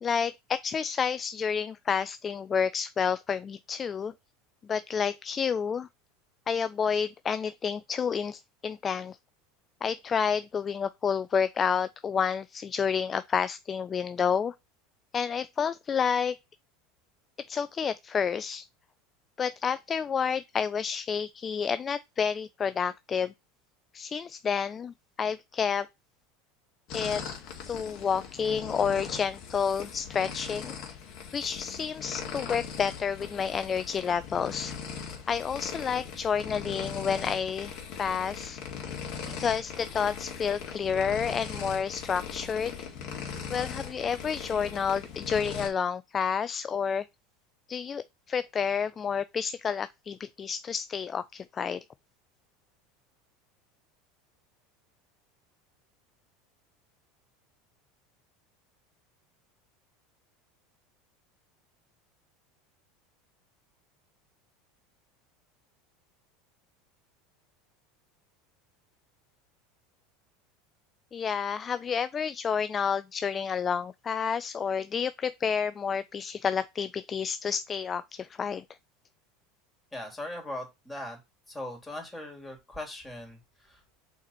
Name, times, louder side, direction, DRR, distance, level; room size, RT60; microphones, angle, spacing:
voice 1, 0.0-4.1 4.7-5.9 6.5-9.2 9.8-14.5 15.1-16.3 17.5-18.7 19.4-23.3 23.9-25.9 26.9-27.2 27.7-30.7 31.3-34.7 35.3-38.6 39.3-42.8 43.1-43.2 43.5-47.0 47.7-51.8 71.1-78.6, left 6 dB, 30° left, 0.3 m, -30 dB
sound 1, 26.9-45.7, left 6 dB, 55° left, 2.1 m, -39 dB
voice 2, 79.9-81.2 81.5-83.8, left 1 dB, 10° left, 3.0 m, -39 dB
5.7 x 4.1 x 4.3 m
hypercardioid pair, 90°, 0 cm